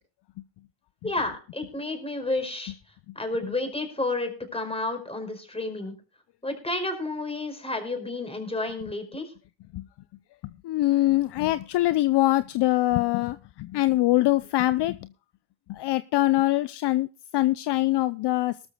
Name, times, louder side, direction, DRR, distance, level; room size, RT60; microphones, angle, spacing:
voice 1, 1.0-2.7 3.1-5.9 6.4-9.3, left 2 dB, 10° left, 4.9 m, -31 dB
voice 2, 10.6-15.1 15.7-17.1 17.3-18.6, left 16 dB, 55° left, 0.7 m, -23 dB
19.0 x 13.5 x 2.3 m
supercardioid pair, 90°, 49 cm